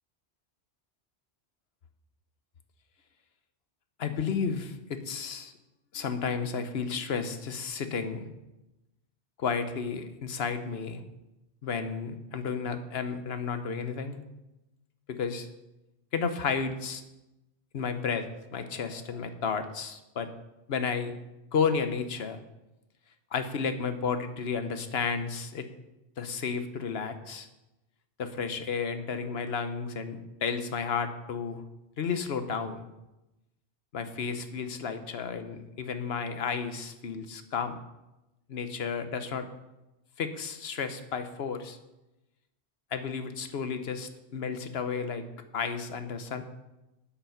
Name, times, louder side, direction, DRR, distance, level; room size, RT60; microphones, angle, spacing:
voice 1, 4.0-5.5 5.9-8.3 9.4-11.0 11.6-14.2 15.1-15.5 16.1-17.0 17.7-20.3 20.7-21.1 21.5-22.4 23.3-25.7 26.2-27.5 28.2-31.6 32.0-32.8 33.9-37.8 38.5-39.5 40.2-41.8 42.9-45.2 45.5-46.4, left 5 dB, 70° left, 9 dB, 1.1 m, -32 dB
8.4 x 8.0 x 5.8 m, 0.97 s
omnidirectional pair, 1.1 m